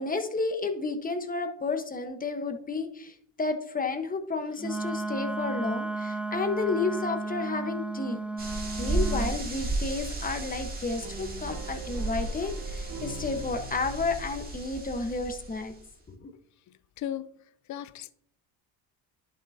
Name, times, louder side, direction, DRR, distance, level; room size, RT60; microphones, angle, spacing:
voice 1, 0.0-8.2 8.8-15.7 16.1-16.3, left 3 dB, 20° left, 1.2 m, -31 dB
Wind instrument woodwind instrument, 4.6-9.4, right 3 dB, 5° right, 0.4 m, -33 dB
sound 1, 8.4-15.9, right 2 dB, 20° right, 2.0 m, -34 dB
sound 2, 11.0-14.4, right 3 dB, 60° right, 2.0 m, -44 dB
voice 2, 17.0-17.3 17.7-18.1, left 10 dB, 45° left, 0.6 m, -35 dB
10.5 x 5.9 x 2.8 m
supercardioid pair, 90°, 42 cm